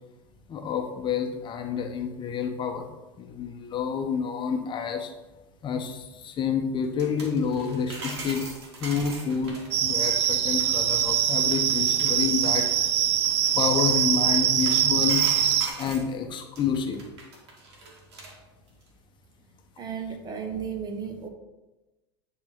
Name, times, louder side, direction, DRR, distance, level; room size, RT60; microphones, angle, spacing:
voice 1, 0.5-2.9 3.2-5.1 5.6-8.5 8.8-12.7 13.6-15.2 15.8-17.0, left 6 dB, 35° left, 5 dB, 0.9 m, -28 dB
sound 1, 6.8-16.1 16.6-18.3 18.7-18.8, right 2 dB, 70° right, 2.0 m, -41 dB
sound 2, 9.7-15.7, right 10 dB, 45° right, 0.6 m, -23 dB
voice 2, 19.8-21.3, right 7 dB, 30° right, 5 dB, 1.2 m, -34 dB
10.0 x 3.7 x 3.8 m, 1.1 s
hypercardioid pair, 85°, 14 cm